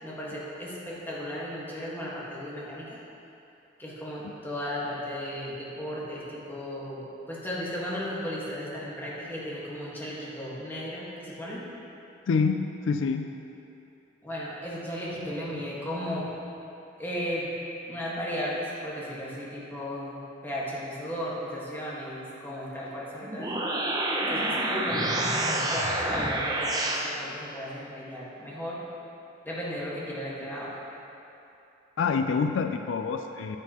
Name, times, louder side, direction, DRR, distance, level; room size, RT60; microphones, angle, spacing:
voice 1, 0.0-3.0 3.8-11.6 14.2-16.3 17.0-17.6 17.9-23.6 24.3-25.1 25.4-28.8 29.4-30.8, equal, 10° left, -7 dB, 1.5 m, -35 dB
voice 2, 12.3-13.3 32.0-33.6, left 5 dB, 80° left, 7 dB, 0.3 m, -27 dB
sound 1, 23.2-27.0, right 1 dB, 20° right, 0.7 m, -28 dB
9.7 x 7.8 x 2.9 m, 2.9 s
head